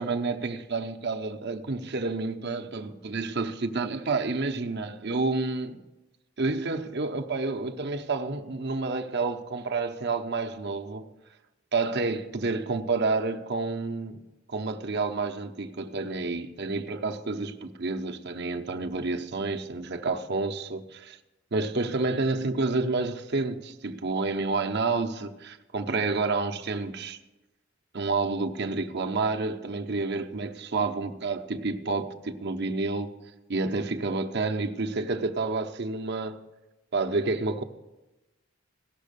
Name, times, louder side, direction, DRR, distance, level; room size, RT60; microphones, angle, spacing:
voice 1, 0.0-5.8 6.4-11.1 11.7-20.8 21.5-27.2 27.9-33.1 33.5-36.4 36.9-37.6, right 3 dB, 60° right, 0.9 m, -29 dB
17.0 x 6.4 x 6.8 m
head